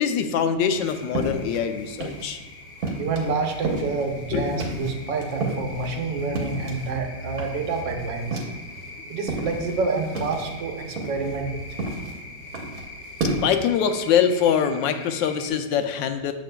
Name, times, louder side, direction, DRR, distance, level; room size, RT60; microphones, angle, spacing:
voice 1, 0.0-2.4 4.3-5.0 13.2-16.3, left 7 dB, 85° left, 8 dB, 1.3 m, -24 dB
sound 1, 0.6-15.5, left 3 dB, 20° left, 1.2 m, -43 dB
sound 2, 0.7-2.4 2.8-7.0 7.3-8.9 9.2-13.4, right 2 dB, 55° right, 1.3 m, -32 dB
voice 2, 3.0-8.4 9.1-11.6, right 4 dB, 85° right, 3 dB, 1.5 m, -28 dB
7.3 x 6.6 x 2.2 m, 1.3 s
omnidirectional pair, 1.9 m